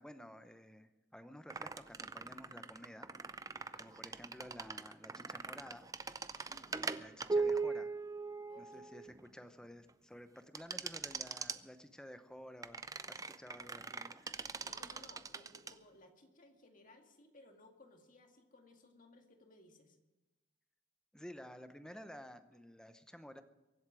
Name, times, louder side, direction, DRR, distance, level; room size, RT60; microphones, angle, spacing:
voice 1, 0.0-3.1 3.8-5.9 6.7-7.9 8.6-14.3 21.1-23.4, equal, 5° left, 9 dB, 0.8 m, -53 dB
sound 1, 1.5-9.3 10.5-11.6 12.6-15.7, right 4 dB, 20° right, 0.5 m, -40 dB
voice 2, 3.6-4.0 6.3-6.9 8.5-8.8 14.6-20.0, left 2 dB, 45° left, 4 dB, 2.1 m, -61 dB
23.5 x 8.2 x 6.2 m, 1.1 s
head